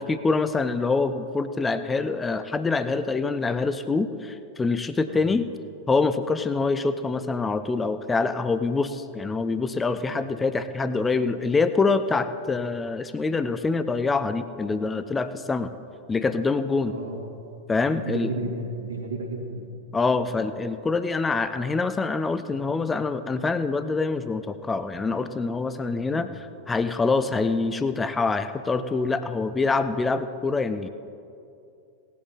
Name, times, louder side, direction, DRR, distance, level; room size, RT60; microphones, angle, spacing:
voice 1, 0.0-5.5 5.9-15.7 16.1-17.0 17.7-18.3 19.9-26.3 26.7-30.9, left 4 dB, 15° left, 12 dB, 0.6 m, -25 dB
voice 2, 16.9-17.2 17.9-19.7 26.1-26.3, right 2 dB, 70° right, -1 dB, 2.4 m, -33 dB
18.0 x 10.5 x 4.3 m, 2.6 s
figure-of-eight pair, 90°, 0 cm